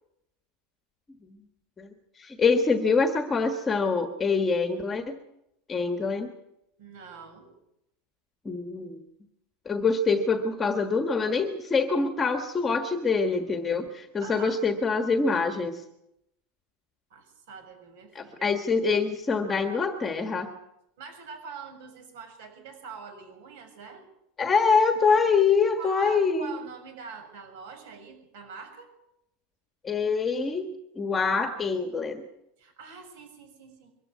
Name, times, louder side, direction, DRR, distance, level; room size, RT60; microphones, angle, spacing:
voice 1, 2.2-5.1 5.7-6.3 8.4-9.0 9.6-15.8 18.1-20.5 24.4-26.5 29.8-30.7 30.9-32.2, left 4 dB, 15° left, 6 dB, 1.4 m, -25 dB
voice 2, 6.8-7.5 14.2-14.6 17.1-18.5 21.0-24.0 25.8-28.9 32.6-33.9, right 5 dB, 65° right, 8 dB, 7.0 m, -44 dB
23.5 x 14.0 x 9.5 m, 0.82 s
supercardioid pair, 170°, 0 cm